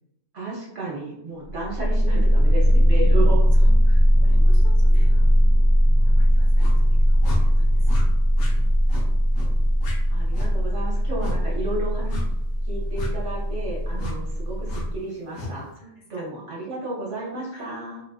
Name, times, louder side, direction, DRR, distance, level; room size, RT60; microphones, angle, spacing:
voice 1, 0.3-3.5 10.1-12.2 12.6-15.8 16.1-18.0, right 2 dB, 65° right, -4 dB, 1.0 m, -32 dB
sound 1, 1.5-15.0, equal, 10° right, 0.9 m, -19 dB
voice 2, 3.5-5.7 6.0-8.0 8.5-8.7 11.0-11.1 15.8-16.3 17.5-17.7, equal, 40° left, -2 dB, 0.6 m, -48 dB
sound 2, 6.6-6.8 7.2-7.4 7.8-8.0 8.4-8.5 8.9-9.1 9.3-9.5 9.8-10.0 10.3-10.5 11.2-11.4 12.1-12.3 12.9-13.1 14.0-14.2 14.7-14.8 15.3-15.5, left 3 dB, 75° left, 1.1 m, -33 dB
3.8 x 2.4 x 2.2 m, 0.86 s
omnidirectional pair, 1.4 m